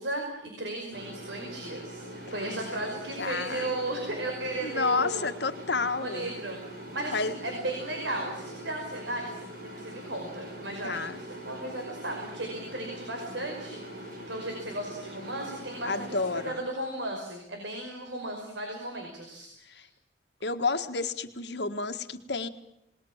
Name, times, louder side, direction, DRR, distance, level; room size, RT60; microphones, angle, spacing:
voice 1, 0.0-5.2 6.0-6.6 6.9-19.9, right 1 dB, 85° right, 2 dB, 5.3 m, -35 dB
sound 1, 0.9-16.5, equal, 50° right, 7.3 m, -43 dB
voice 2, 2.3-2.9 3.2-3.7 4.6-6.3 7.1-7.3 10.8-11.2 15.9-16.6 19.7-19.9 20.4-22.5, left 4 dB, 70° left, 8 dB, 1.7 m, -30 dB
28.0 x 20.5 x 7.4 m, 0.84 s
head